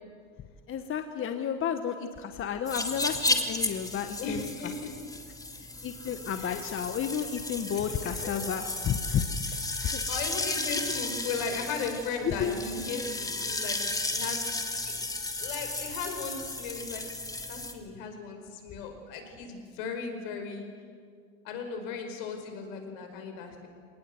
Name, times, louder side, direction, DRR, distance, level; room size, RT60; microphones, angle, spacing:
voice 1, 0.7-4.5 5.5-10.0 12.2-12.6, left 8 dB, 30° left, 7 dB, 1.3 m, -32 dB
sound 1, 2.7-17.7, left 2 dB, 10° left, 2.2 m, -34 dB
voice 2, 4.2-4.9 6.4-6.6 7.7-8.3 9.7-14.4 15.4-17.0 17.5-20.7 21.4-23.7, left 5 dB, 65° left, 5 dB, 5.3 m, -37 dB
26.0 x 19.0 x 8.0 m, 2.1 s
hypercardioid pair, 105°, 41 cm